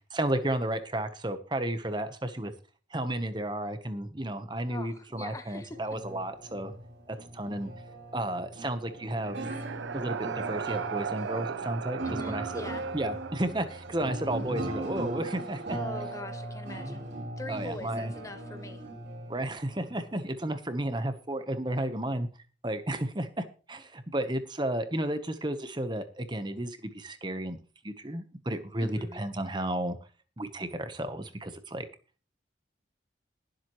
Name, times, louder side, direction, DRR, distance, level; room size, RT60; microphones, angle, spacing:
voice 1, 0.1-2.5 2.9-6.7 7.1-7.7 8.1-9.5 9.9-12.0 12.3-12.6 12.9-15.8 17.5-18.1 19.3-22.3 22.6-27.6 27.8-30.0 30.4-31.8, right 1 dB, 25° right, 10 dB, 1.0 m, -33 dB
voice 2, 4.7-5.8 12.0-12.9 15.7-17.1 17.4-18.8 28.8-29.2, left 2 dB, 15° left, 9 dB, 0.7 m, -42 dB
sound 1, 5.7-20.4, right 2 dB, 65° right, 3.2 m, -39 dB
sound 2, 8.9-16.7, right 6 dB, 85° right, 0.6 m, -39 dB
21.0 x 7.6 x 3.1 m, 0.37 s
head